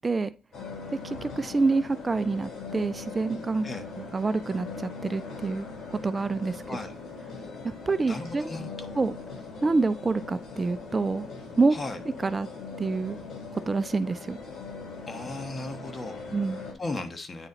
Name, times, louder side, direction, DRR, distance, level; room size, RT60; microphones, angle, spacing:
sound 1, 0.5-16.7, left 4 dB, 60° left, 3.7 m, -40 dB
voice 1, 1.0-3.7 4.1-6.8 7.6-8.4 8.9-9.2 9.6-11.3 11.6-11.8 12.2-12.5 12.8-13.2 13.5-14.4 16.3-16.6, right 3 dB, 25° right, 14 dB, 0.3 m, -27 dB
voice 2, 8.1-8.9 11.7-12.0 15.1-16.2 16.8-17.5, left 2 dB, 30° left, 7 dB, 1.3 m, -36 dB
9.1 x 4.1 x 3.9 m, 0.36 s
cardioid pair, 90°, 0 cm